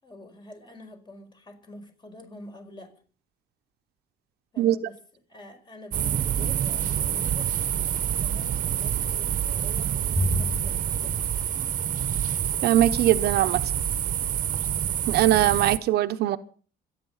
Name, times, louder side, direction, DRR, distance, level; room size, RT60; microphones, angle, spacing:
voice 1, 0.0-2.9 4.5-5.0 5.3-7.6 8.1-11.1, left 1 dB, 25° left, 5.2 m, -46 dB
sound 1, 5.9-15.8, right 10 dB, 50° right, 1.1 m, -27 dB
Bowed string instrument, 10.2-12.7, left 1 dB, ahead, 3.4 m, -32 dB
voice 2, 12.6-13.6 15.1-16.4, right 13 dB, 70° right, 1.0 m, -21 dB
26.0 x 9.6 x 5.7 m
cardioid pair, 110°, 17 cm